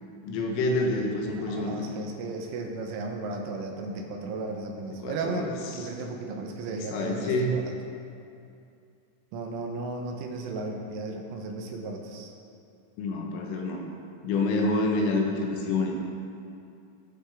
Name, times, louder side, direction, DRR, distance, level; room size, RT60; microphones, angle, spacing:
voice 1, 0.2-1.8 5.0-5.5 6.9-7.6 13.0-13.8 14.2-15.9, left 2 dB, 90° left, 1 dB, 3.7 m, -27 dB
voice 2, 1.4-7.7 9.3-12.3, right 3 dB, 85° right, 2 dB, 3.6 m, -35 dB
20.0 x 7.4 x 3.7 m, 2.5 s
omnidirectional pair, 5.7 m